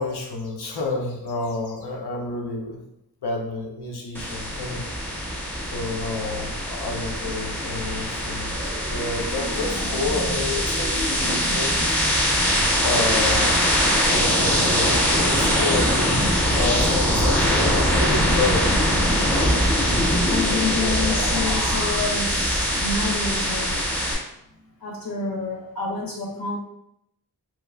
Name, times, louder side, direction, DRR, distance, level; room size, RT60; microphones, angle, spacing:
voice 1, 0.0-2.8 3.2-4.9 5.7-8.6 8.8-12.3 12.8-13.6 14.0-16.2 16.5-18.7 19.0-19.7 20.0-20.3, left 3 dB, 85° left, 0 dB, 0.7 m, -30 dB
sound 1, 4.1-24.1, equal, 5° left, 0.9 m, -22 dB
voice 2, 20.3-23.8 24.8-26.6, left 3 dB, 65° left, -4 dB, 1.1 m, -28 dB
3.0 x 2.3 x 3.4 m, 0.80 s
wide cardioid pair, 65°, 38 cm